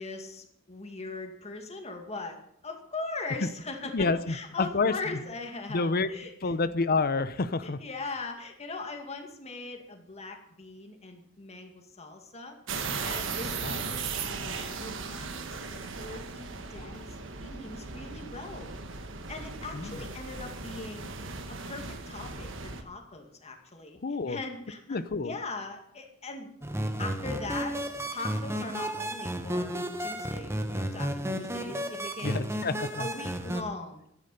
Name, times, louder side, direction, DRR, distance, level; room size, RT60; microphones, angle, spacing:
voice 1, 0.0-6.5 7.6-12.6 13.0-18.7 19.3-21.1 21.5-24.0 24.3-26.5 27.0-27.8 28.1-29.7 30.0-32.5 33.0-34.0, left 3 dB, 35° left, 3 dB, 2.1 m, -40 dB
voice 2, 3.8-4.9 5.7-6.1 6.4-7.8 13.6-14.1 19.7-20.0 24.0-24.4 24.9-25.3 32.2-33.1, left 3 dB, 50° left, 14 dB, 0.7 m, -29 dB
sound 1, 12.7-22.8, right 5 dB, 65° right, 1.4 m, -37 dB
sound 2, 26.6-33.6, right 1 dB, 15° right, 1.1 m, -33 dB
12.0 x 11.0 x 5.4 m, 0.74 s
head